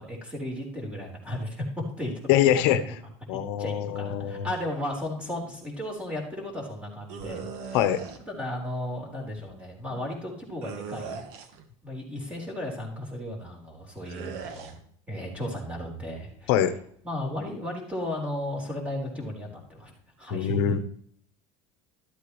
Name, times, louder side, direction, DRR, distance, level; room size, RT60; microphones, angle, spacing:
voice 1, 0.0-2.9 3.6-7.8 8.3-11.2 11.8-14.8 15.1-16.6 17.0-19.9 20.2-20.7, left 1 dB, 10° right, -1 dB, 4.0 m, -35 dB
voice 2, 2.3-2.8 3.3-4.5 7.7-8.0 16.5-16.7 20.3-20.8, left 10 dB, 80° left, 11 dB, 0.9 m, -23 dB
sound 1, 7.1-8.2 10.6-11.6 14.0-14.7, right 6 dB, 75° right, 1.4 m, -39 dB
13.0 x 8.3 x 3.1 m, 0.64 s
cardioid pair, 140°, 13 cm